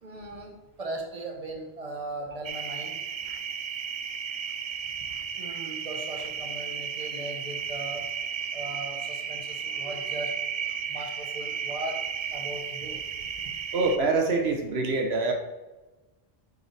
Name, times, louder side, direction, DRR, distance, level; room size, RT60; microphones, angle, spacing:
voice 1, 0.0-3.0 5.4-8.1 8.5-10.3 10.9-12.0 12.3-13.0 13.4-13.5, right 2 dB, 35° right, 1 dB, 1.2 m, -38 dB
sound 1, 2.4-14.0, right 7 dB, 50° right, 0.4 m, -34 dB
voice 2, 13.7-15.3, right 3 dB, 80° right, 4 dB, 1.1 m, -25 dB
8.0 x 5.2 x 3.3 m, 1.1 s
omnidirectional pair, 1.1 m